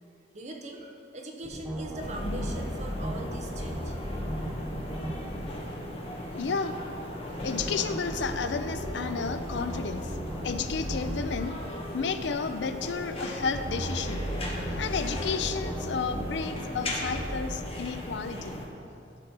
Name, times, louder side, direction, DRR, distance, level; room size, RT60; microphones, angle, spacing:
voice 1, 0.3-3.9, right 1 dB, 40° right, 1 dB, 0.8 m, -41 dB
sound 1, 1.4-5.4 7.4-11.4 13.4-17.4, equal, ahead, 1.0 m, -36 dB
sound 2, 2.0-18.7, left 1 dB, 30° left, 0.9 m, -38 dB
voice 2, 6.3-6.8 7.4-10.2 10.4-11.6 11.9-14.3 14.6-18.6, left 5 dB, 70° left, 10 dB, 0.4 m, -32 dB
11.5 x 4.3 x 6.0 m, 2.5 s
head